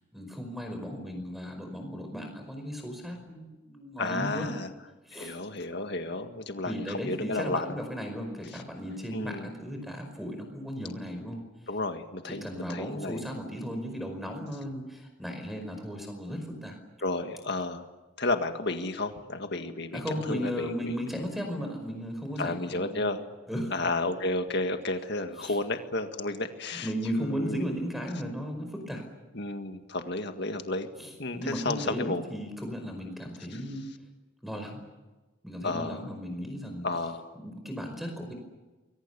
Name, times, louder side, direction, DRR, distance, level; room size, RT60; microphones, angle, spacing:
voice 1, 0.1-4.5 5.1-5.4 6.7-11.4 12.3-16.8 19.9-23.0 23.5-23.7 25.4-25.6 26.8-29.1 31.0-33.9 34.4-34.8 35.4-36.9 37.4-38.3, equal, ahead, 5 dB, 5.0 m, -36 dB
voice 2, 4.0-4.7 5.1-7.8 8.5-8.6 9.1-9.5 11.7-13.3 17.0-17.8 18.2-21.0 22.4-23.2 23.7-27.7 29.3-30.9 31.2-32.2 33.5-33.6 35.6-36.1 36.8-37.3, left 2 dB, 55° left, 7 dB, 1.9 m, -32 dB
29.0 x 22.5 x 6.9 m, 1.2 s
head